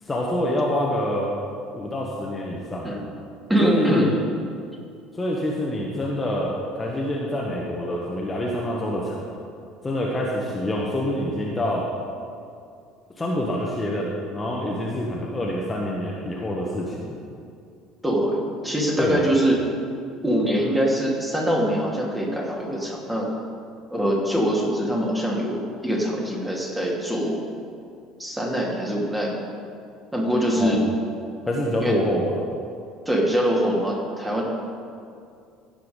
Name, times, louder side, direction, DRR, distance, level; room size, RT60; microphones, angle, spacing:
voice 1, 0.0-1.3 1.7-2.9 3.6-4.2 5.1-9.2 9.8-11.9 13.2-17.2 19.0-19.3 30.5-30.8 31.4-32.3, left 1 dB, 20° left, -3 dB, 1.6 m, -26 dB
voice 2, 3.5-4.1 18.0-19.6 20.2-23.3 23.9-27.4 28.2-29.4 30.1-30.8 31.8-32.0 33.0-34.4, equal, 10° right, -2 dB, 2.7 m, -23 dB
16.0 x 6.0 x 5.3 m, 2.4 s
figure-of-eight pair, 60°, 0 cm